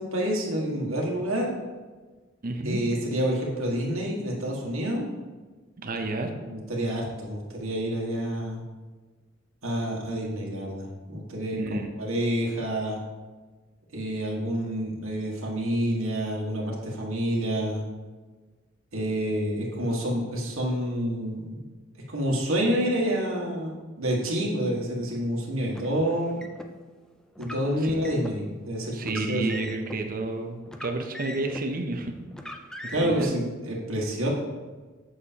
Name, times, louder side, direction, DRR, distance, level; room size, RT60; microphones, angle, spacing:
voice 1, 0.0-1.5 2.6-5.1 6.2-8.6 9.6-13.0 13.9-17.8 18.9-21.6 22.1-26.4 27.4-29.6 32.9-34.3, equal, 85° right, -2 dB, 1.6 m, -28 dB
voice 2, 2.4-2.8 5.8-6.3 11.6-11.9 27.8-28.0 28.9-32.1 32.8-33.4, right 2 dB, 45° right, 5 dB, 0.7 m, -31 dB
Car, 25.7-26.7 27.4-28.4 29.0-30.0 30.7-31.7 32.3-33.3, left 1 dB, 5° left, 0.4 m, -41 dB
7.9 x 6.3 x 2.8 m, 1.3 s
head